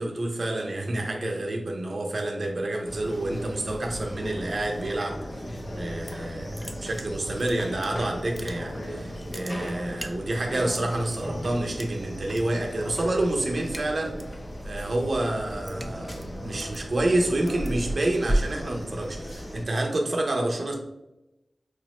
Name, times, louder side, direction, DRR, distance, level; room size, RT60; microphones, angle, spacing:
voice 1, 0.0-5.2 5.8-14.2 14.6-20.7, right 1 dB, 65° right, 1 dB, 0.5 m, -28 dB
sound 1, 2.8-19.6, equal, 45° left, 0.6 m, -37 dB
sound 2, 5.8-6.3 6.5-7.9 8.2-8.9 9.2-11.2 11.8-12.4 12.7-13.0 13.3-14.4 14.8-19.3, right 1 dB, ahead, 0.4 m, -33 dB
4.5 x 2.0 x 2.9 m, 0.93 s
cardioid pair, 50°, 0 cm